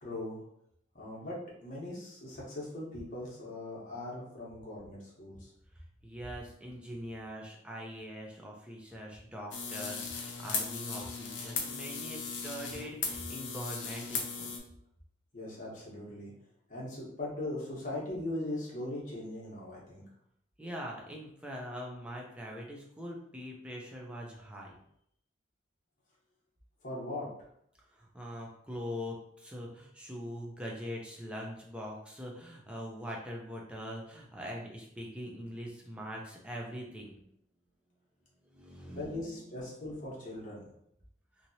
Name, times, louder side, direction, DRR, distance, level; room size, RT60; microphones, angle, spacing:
voice 1, 0.0-0.4 0.9-5.5 15.3-16.3 16.7-20.0 26.8-27.3 38.9-40.7, left 1 dB, 45° left, -4 dB, 1.0 m, -40 dB
voice 2, 6.0-14.6 20.6-24.8 27.9-37.2 38.5-39.4, equal, 5° right, -2 dB, 0.5 m, -42 dB
sound 1, 9.5-14.6, left 5 dB, 70° left, 0.6 m, -37 dB
2.9 x 2.8 x 2.7 m, 0.72 s
head